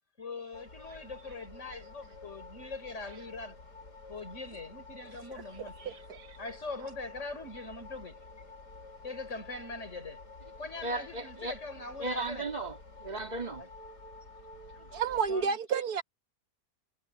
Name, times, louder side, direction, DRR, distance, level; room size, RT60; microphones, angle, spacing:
voice 1, 0.2-3.6 4.1-6.1 6.4-8.2 9.0-10.2 10.6-12.5 13.6-13.7 15.1-15.6, left 3 dB, 45° left, 5.7 m, -42 dB
sound 1, 0.5-15.5, left 3 dB, 70° left, 3.0 m, -50 dB
voice 2, 5.8-6.4 14.9-16.0, right 6 dB, 65° right, 1.6 m, -31 dB
voice 3, 10.8-11.6 12.0-13.6, right 2 dB, 25° right, 2.3 m, -36 dB
omnidirectional pair, 1.8 m